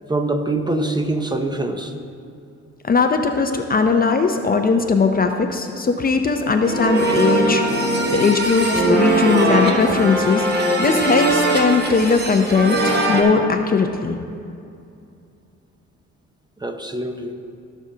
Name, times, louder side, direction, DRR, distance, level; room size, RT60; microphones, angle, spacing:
voice 1, 0.1-1.9 11.9-12.0 16.6-17.3, right 2 dB, 15° right, 5 dB, 0.7 m, -24 dB
voice 2, 2.8-14.2, left 4 dB, 30° left, 5 dB, 0.6 m, -19 dB
sound 1, 6.6-13.2, right 2 dB, 35° right, 1.5 m, -20 dB
16.0 x 6.3 x 2.8 m, 2.5 s
cardioid pair, 90°, 30 cm